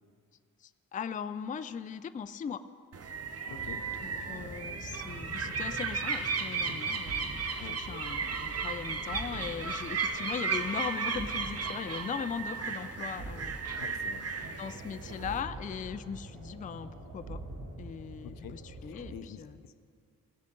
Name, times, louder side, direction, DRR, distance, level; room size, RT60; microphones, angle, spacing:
voice 1, 0.6-2.6 4.0-13.5 14.4-17.4 17.8-19.6, left 7 dB, 25° left, 11 dB, 0.3 m, -39 dB
sound 1, 2.9-15.4, right 5 dB, 45° right, 0.8 m, -35 dB
sound 2, 3.4-19.2, right 2 dB, 70° right, 2.3 m, -46 dB
voice 2, 3.5-3.9 7.6-7.8 13.8-14.2 18.2-19.8, left 9 dB, 75° left, 11 dB, 0.6 m, -47 dB
17.5 x 7.4 x 3.8 m, 2.3 s
cardioid pair, 65°, 34 cm